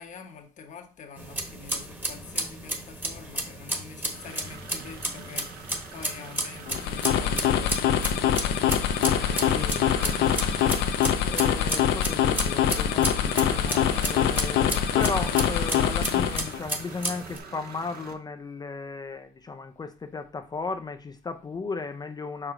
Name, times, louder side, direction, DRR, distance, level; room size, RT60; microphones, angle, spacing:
voice 1, 0.0-9.7 14.3-14.4, left 5 dB, 45° left, 1.1 m, -45 dB
sound 1, 1.2-17.4, right 1 dB, 10° right, 1.2 m, -34 dB
sound 2, 4.0-18.1, right 5 dB, 60° right, 1.1 m, -43 dB
sound 3, 6.7-16.6, left 9 dB, 80° left, 0.7 m, -24 dB
voice 2, 9.5-10.2 11.2-22.5, left 4 dB, 25° left, 0.5 m, -35 dB
5.4 x 5.0 x 3.6 m
cardioid pair, 110°, 17 cm